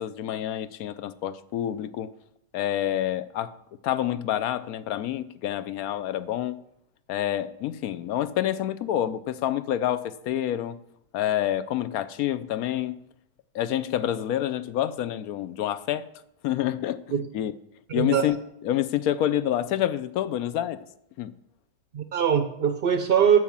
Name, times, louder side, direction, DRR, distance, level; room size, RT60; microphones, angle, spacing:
voice 1, 0.0-2.1 2.5-3.5 3.8-6.6 7.1-10.8 11.1-13.0 13.5-16.1 16.4-17.0 17.3-17.5 17.9-18.4 18.6-20.8 21.2-21.3, left 11 dB, 70° left, 1.0 m, -27 dB
voice 2, 17.9-18.2 21.9-23.4, right 8 dB, 55° right, 0.6 m, -22 dB
9.4 x 7.0 x 7.3 m
omnidirectional pair, 1.7 m